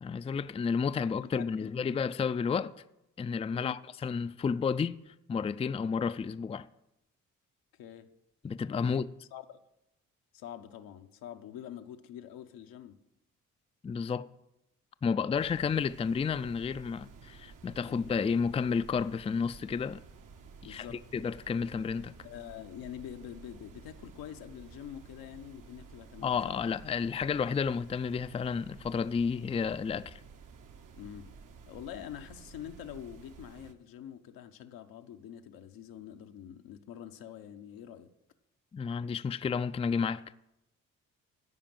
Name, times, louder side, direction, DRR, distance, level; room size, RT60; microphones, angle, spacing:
voice 1, 0.0-2.7 3.2-5.0 5.3-6.7 8.4-9.1 13.8-14.3 15.0-20.0 20.6-22.1 26.2-30.2 38.7-40.2, left 6 dB, 20° left, 0.4 m, -31 dB
voice 2, 1.2-1.7 3.5-3.8 7.8-8.1 8.8-9.0 9.3-9.6 10.3-13.0 17.8-18.1 20.6-21.0 22.2-26.6 31.0-31.3 31.7-38.1, left 10 dB, 80° left, 0.9 m, -45 dB
sound 1, 15.3-33.7, right 5 dB, 65° right, 1.1 m, -52 dB
13.5 x 5.1 x 7.7 m
supercardioid pair, 50°, 35 cm